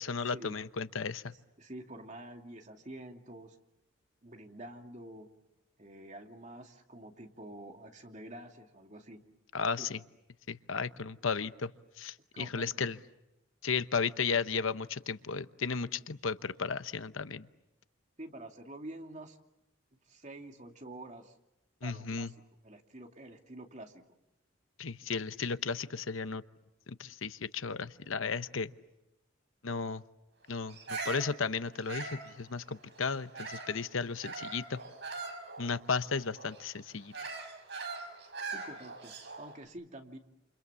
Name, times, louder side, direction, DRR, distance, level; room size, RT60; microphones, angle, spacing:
voice 1, 0.0-1.3 9.5-10.0 10.5-11.7 12.0-13.0 13.6-17.5 21.8-22.3 24.8-26.4 26.9-28.7 29.6-30.0 30.5-34.8 35.6-37.1, left 5 dB, 85° left, 13 dB, 0.9 m, -34 dB
voice 2, 1.6-3.6 4.2-5.3 5.8-9.2 9.8-9.9 12.3-12.9 18.2-19.4 20.1-21.3 21.8-22.3 22.6-24.0 38.4-40.2, right 1 dB, 35° right, 3 dB, 2.6 m, -47 dB
Bird vocalization bird call bird song, 30.7-33.8 34.2-39.5, right 3 dB, 60° right, 6.0 m, -42 dB
29.0 x 28.0 x 7.1 m, 0.92 s
head